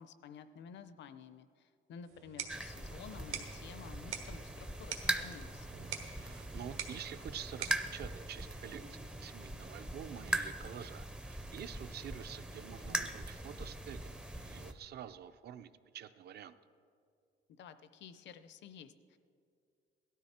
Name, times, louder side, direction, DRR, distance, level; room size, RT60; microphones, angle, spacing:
voice 1, 0.0-5.7 17.5-19.2, left 7 dB, 60° left, 12 dB, 0.6 m, -52 dB
sound 1, 2.1-9.0, right 8 dB, 85° right, 1.5 m, -47 dB
sound 2, 2.5-14.7, right 1 dB, 5° right, 0.5 m, -41 dB
voice 2, 6.2-16.6, right 9 dB, 55° right, 12 dB, 0.5 m, -48 dB
17.5 x 13.0 x 4.3 m, 2.3 s
cardioid pair, 175°, 20 cm